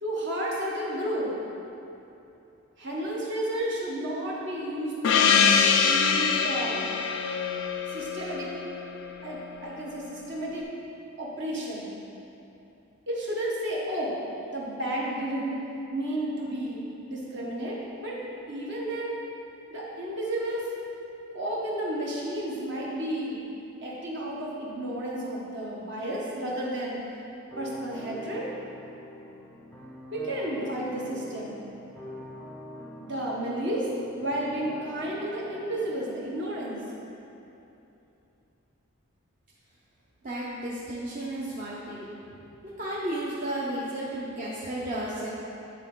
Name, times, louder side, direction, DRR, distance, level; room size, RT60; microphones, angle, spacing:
voice 1, 0.0-1.3 2.8-5.5 5.8-6.8 7.9-8.5 9.2-10.7 11.2-11.9 13.1-14.1 14.5-15.6 15.9-16.8 17.1-18.2 18.5-19.2 19.7-20.7 21.3-23.4 23.8-27.0 27.6-28.5 30.1-31.6 33.0-33.9 34.2-36.8, right 1 dB, 60° right, -5 dB, 1.4 m, -32 dB
Gong, 5.0-9.4, left 6 dB, 60° left, 0.4 m, -24 dB
sound 1, 27.5-36.4, left 1 dB, 10° left, 0.5 m, -44 dB
voice 2, 40.2-42.1 42.8-45.3, right 1 dB, 40° right, -7 dB, 0.8 m, -33 dB
10.5 x 3.8 x 3.8 m, 2.9 s
head